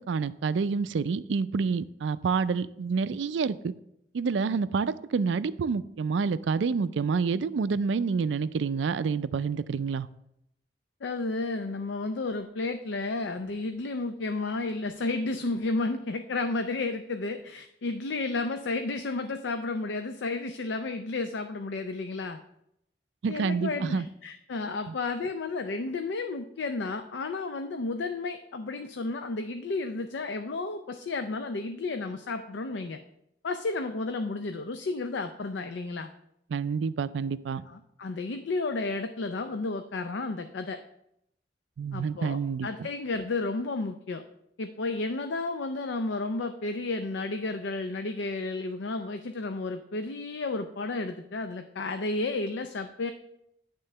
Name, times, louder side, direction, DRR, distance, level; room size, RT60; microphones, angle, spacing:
voice 1, 0.1-3.7 4.1-10.1 23.2-24.1 24.9-25.0 36.5-37.6 41.8-42.9, right 5 dB, 90° right, 15 dB, 0.4 m, -28 dB
voice 2, 11.0-22.4 23.3-33.0 33.4-36.1 37.6-40.8 41.9-44.2 44.6-53.1, left 3 dB, 85° left, 7 dB, 0.5 m, -32 dB
11.0 x 3.7 x 5.5 m, 0.78 s
head